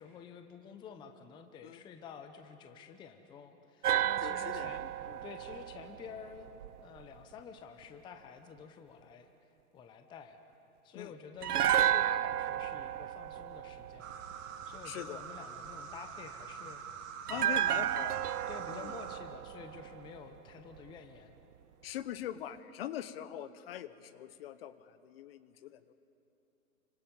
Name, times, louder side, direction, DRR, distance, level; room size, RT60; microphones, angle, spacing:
voice 1, 0.0-6.5 6.8-9.3 9.7-10.4 10.8-14.2 14.7-16.8 17.3-17.9 18.5-21.4, left 6 dB, 10° left, 7 dB, 0.7 m, -50 dB
sound 1, 3.8-7.0 11.4-14.6 17.3-20.5 20.8-20.9, right 12 dB, 80° right, 0.6 m, -33 dB
voice 2, 4.2-5.2 10.9-11.1 14.8-15.2 17.3-18.2 18.7-18.9 21.8-25.9, left 11 dB, 40° left, 14 dB, 0.9 m, -43 dB
sound 2, 14.0-19.2, right 7 dB, 55° right, 2.2 m, -45 dB
29.5 x 25.5 x 5.4 m, 2.9 s
hypercardioid pair, 135°, 46 cm